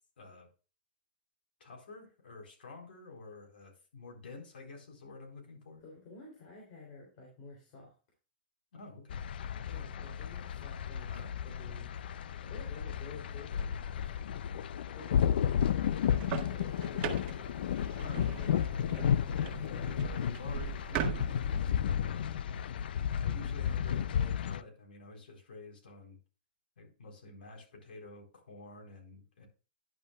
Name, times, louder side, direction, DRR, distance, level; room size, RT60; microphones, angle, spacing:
voice 1, 0.2-0.5 1.6-5.8 8.7-9.2 11.1-11.3 17.9-19.0 19.3-21.7 22.0-22.3 23.1-26.2 26.8-29.5, left 3 dB, 90° left, 2 dB, 4.2 m, -49 dB
voice 2, 5.8-7.9 9.6-11.9 12.4-14.2 14.6-19.9, left 3 dB, 40° left, -1 dB, 3.3 m, -51 dB
sound 1, 9.1-24.6, left 8 dB, 70° left, 0.5 m, -33 dB
sound 2, 16.0-21.7, right 8 dB, 30° right, 1.6 m, -40 dB
10.5 x 8.3 x 2.4 m, 0.34 s
hypercardioid pair, 155°, 5 cm